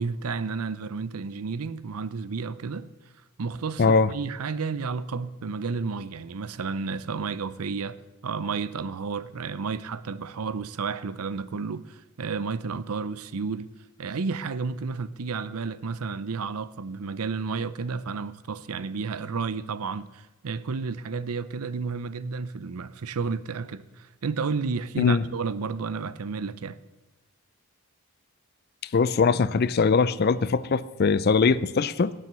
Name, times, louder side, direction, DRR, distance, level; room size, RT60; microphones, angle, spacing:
voice 1, 0.0-2.9 3.4-13.7 14.0-26.8, right 4 dB, 80° right, 0.6 m, -31 dB
voice 2, 3.8-4.1 25.0-25.2 28.9-32.1, left 4 dB, 45° left, 0.4 m, -21 dB
18.0 x 7.6 x 6.8 m
head